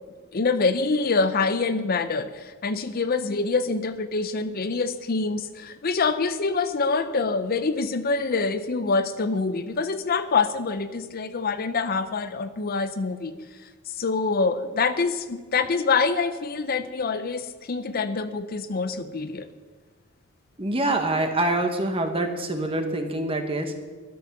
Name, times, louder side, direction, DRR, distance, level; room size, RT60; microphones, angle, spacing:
voice 1, 0.3-13.4 14.0-19.5, left 4 dB, 45° left, 11 dB, 0.6 m, -25 dB
voice 2, 20.6-23.8, right 2 dB, 25° right, 6 dB, 1.3 m, -25 dB
12.5 x 10.0 x 6.7 m, 1.4 s
head